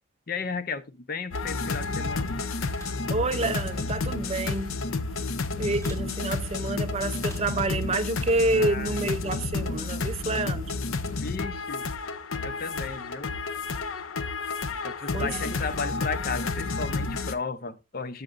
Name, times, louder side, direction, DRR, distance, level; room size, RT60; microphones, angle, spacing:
voice 1, 0.3-2.4 8.5-9.0 11.2-11.8 12.4-13.3 14.8-18.2, left 5 dB, 45° left, 0.6 m, -34 dB
sound 1, 1.3-17.3, left 3 dB, 85° left, 0.7 m, -31 dB
sound 2, 2.6-3.1 4.4-4.6 5.8-6.1 7.2-7.6, right 1 dB, 15° left, 3.0 m, -49 dB
voice 2, 3.1-4.8 5.6-10.8 15.1-15.6, right 2 dB, 30° right, 0.5 m, -28 dB
13.0 x 7.2 x 2.5 m
head